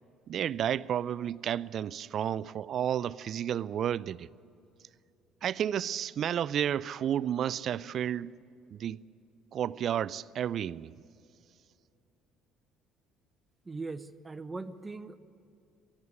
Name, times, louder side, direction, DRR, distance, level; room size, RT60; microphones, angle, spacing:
voice 1, 0.3-4.3 5.4-8.3 8.7-9.0 9.5-10.9, right 9 dB, 50° right, 0.4 m, -31 dB
voice 2, 13.6-15.2, right 3 dB, 20° right, 0.9 m, -40 dB
20.0 x 13.5 x 9.7 m
figure-of-eight pair, 55°, 0 cm